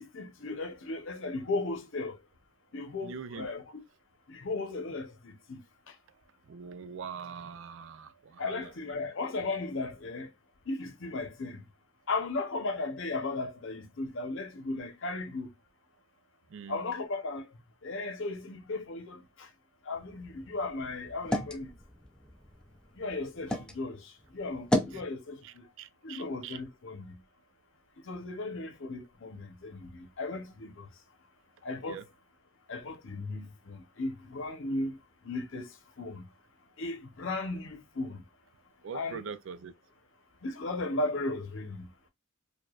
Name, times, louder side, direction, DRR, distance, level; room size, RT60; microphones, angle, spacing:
voice 1, 0.0-2.2 2.7-3.6 4.3-5.6 8.4-10.3 10.7-11.6 12.1-15.5 16.7-17.5 17.8-19.5 19.9-21.7 23.0-25.6 26.0-27.2 28.1-30.9 31.6-32.0 32.7-35.0 35.2-35.7 36.0-36.2 36.8-38.2 38.9-39.3 40.4-41.9, left 3 dB, 60° left, 0.8 m, -36 dB
voice 2, 3.0-3.5 6.5-8.7 16.5-16.8 24.9-25.0 25.4-26.6 31.9-32.0 38.8-39.7, right 6 dB, 60° right, 0.4 m, -43 dB
sound 1, 19.9-23.8 24.2-25.0, left 1 dB, 5° left, 0.4 m, -34 dB
4.8 x 2.3 x 2.3 m
head